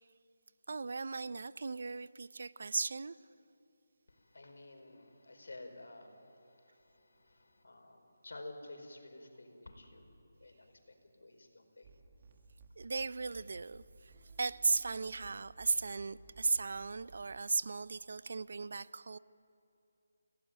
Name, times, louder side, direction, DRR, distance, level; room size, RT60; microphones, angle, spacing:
voice 1, 0.7-3.1 12.8-14.1 14.4-19.2, right 4 dB, 55° right, 0.6 m, -36 dB
voice 2, 4.1-10.1 10.4-11.9, left 2 dB, 80° left, 4.7 m, -52 dB
sound 1, 11.8-17.4, right 3 dB, 25° right, 1.7 m, -57 dB
29.0 x 17.5 x 8.9 m
figure-of-eight pair, 175°, 0 cm